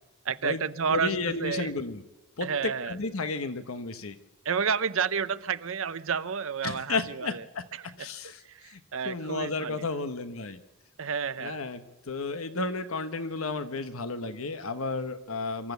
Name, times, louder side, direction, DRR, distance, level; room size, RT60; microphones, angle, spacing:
voice 1, 0.2-1.1 1.4-1.7 2.4-2.9 4.4-7.4 8.5-9.8 11.0-11.6, right 6 dB, 65° right, 13 dB, 0.7 m, -30 dB
voice 2, 0.9-2.0 2.4-4.2 6.6-10.6 11.4-15.7, left 3 dB, 75° left, 11 dB, 1.1 m, -33 dB
25.5 x 13.0 x 8.1 m, 1.0 s
head